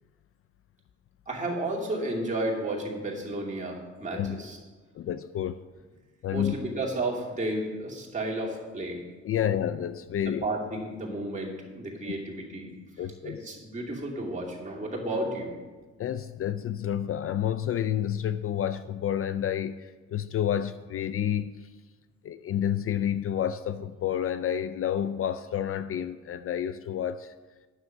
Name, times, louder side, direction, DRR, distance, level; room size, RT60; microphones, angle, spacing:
voice 1, 1.3-4.6 6.3-9.0 9.4-9.5 10.2-12.7 13.2-15.5, right 1 dB, 25° right, -3 dB, 2.6 m, -32 dB
voice 2, 4.1-4.4 4.9-5.6 6.2-6.5 9.2-10.4 12.1-12.2 13.0-13.4 16.0-21.7 22.2-27.3, left 10 dB, 50° left, 12 dB, 0.4 m, -29 dB
9.8 x 6.4 x 6.2 m, 1.3 s
cardioid pair, 90°, 30 cm